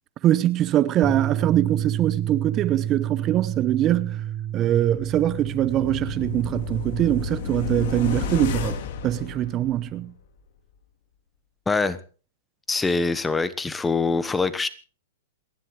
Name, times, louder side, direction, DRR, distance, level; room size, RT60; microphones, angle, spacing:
voice 1, 0.2-4.2 4.5-10.1, right 12 dB, 30° right, 0.9 m, -23 dB
sound 1, 1.0-7.3, right 10 dB, 25° left, 3.2 m, -30 dB
sound 2, 4.8-10.0 10.4-10.5, left 6 dB, 55° left, 2.3 m, -32 dB
voice 2, 11.7-12.0 12.7-14.7, left 4 dB, 10° left, 1.2 m, -24 dB
28.0 x 11.5 x 3.2 m
hypercardioid pair, 110°, 0 cm